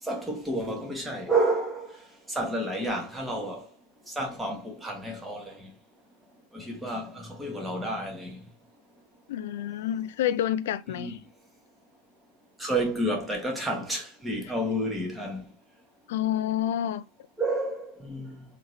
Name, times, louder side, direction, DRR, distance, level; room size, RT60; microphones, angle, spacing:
voice 1, 0.0-3.7 4.1-5.7 6.5-8.4 10.9-11.2 12.6-15.4 17.4-18.4, right 1 dB, 5° right, 1.2 m, -30 dB
voice 2, 9.3-11.2 16.1-17.0, left 11 dB, 55° left, 0.4 m, -28 dB
3.6 x 2.9 x 3.0 m
figure-of-eight pair, 90°, 0 cm